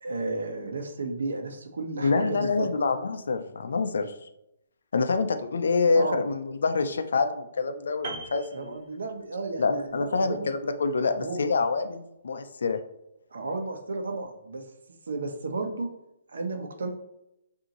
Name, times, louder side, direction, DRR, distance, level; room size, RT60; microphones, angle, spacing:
voice 1, 0.0-2.7 5.9-6.2 8.5-10.5 11.1-11.5 13.3-14.6 15.1-15.9 16.3-16.9, right 3 dB, 70° right, 4 dB, 0.9 m, -33 dB
voice 2, 2.0-4.1 4.9-8.8 9.6-12.8, left 4 dB, 65° left, 8 dB, 0.5 m, -26 dB
Piano, 8.0-9.5 9.8-10.0, right 3 dB, 35° right, 0.7 m, -40 dB
6.5 x 2.8 x 2.9 m, 0.85 s
hypercardioid pair, 180°, 0 cm